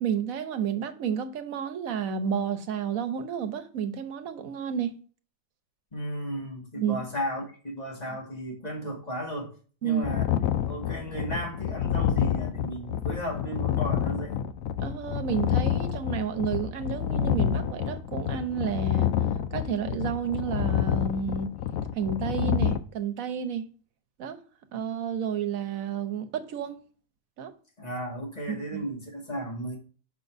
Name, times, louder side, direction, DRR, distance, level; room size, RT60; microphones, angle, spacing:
voice 1, 0.0-4.9 6.8-7.0 9.8-10.0 14.8-19.1 19.5-21.5 21.9-23.7 24.2-24.4 24.7-26.8 27.4-27.5 28.5-28.8, right 7 dB, 80° right, 1.3 m, -31 dB
voice 2, 5.9-9.5 9.8-10.3 10.7-14.5 27.8-29.8, equal, 30° left, 2.0 m, -35 dB
sound 1, 10.0-22.8, left 9 dB, 80° left, 1.0 m, -28 dB
6.2 x 4.1 x 4.4 m
omnidirectional pair, 1.4 m